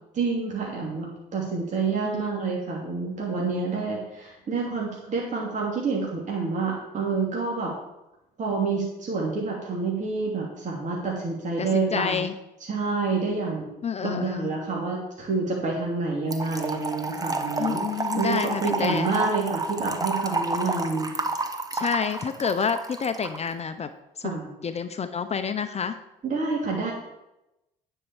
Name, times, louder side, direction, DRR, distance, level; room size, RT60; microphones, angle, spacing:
voice 1, 0.1-7.7 8.4-12.2 12.7-13.7 14.0-17.8 18.1-21.1 24.2-24.5 26.2-26.9, right 4 dB, 45° right, -3 dB, 2.8 m, -28 dB
voice 2, 2.0-2.5 11.6-12.3 13.8-14.5 17.6-19.1 21.7-23.9 24.2-26.0, left 6 dB, 35° left, 10 dB, 0.7 m, -29 dB
Trickle dribble / Fill (with liquid), 16.3-23.4, right 3 dB, 20° right, 1.3 m, -30 dB
9.8 x 5.5 x 7.2 m, 0.92 s
supercardioid pair, 70°, 18 cm